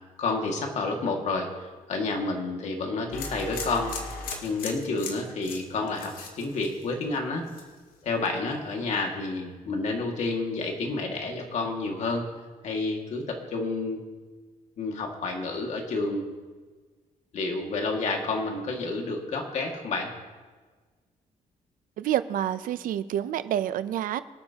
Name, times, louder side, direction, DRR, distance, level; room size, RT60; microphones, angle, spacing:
voice 1, 0.2-4.0 4.4-7.4 8.0-12.3 12.6-14.0 14.8-16.3 17.3-20.1, left 3 dB, 55° left, 1 dB, 2.1 m, -30 dB
sound 1, 3.1-7.2 7.5-7.9, left 4 dB, 85° left, 2.1 m, -38 dB
voice 2, 22.0-24.2, right 11 dB, 75° right, 13 dB, 0.6 m, -28 dB
26.0 x 8.9 x 2.9 m, 1.4 s
cardioid pair, 170°, 14 cm